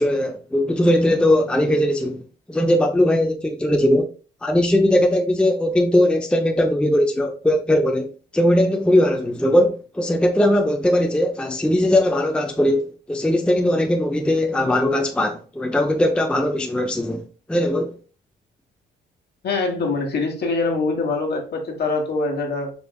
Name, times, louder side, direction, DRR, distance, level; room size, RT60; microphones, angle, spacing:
voice 1, 0.0-4.1 4.4-8.1 8.3-17.2 17.5-17.9, left 1 dB, 5° left, 0.5 m, -19 dB
voice 2, 19.4-22.7, left 3 dB, 55° left, 1.3 m, -24 dB
5.1 x 3.3 x 2.2 m
cardioid pair, 90°, 20 cm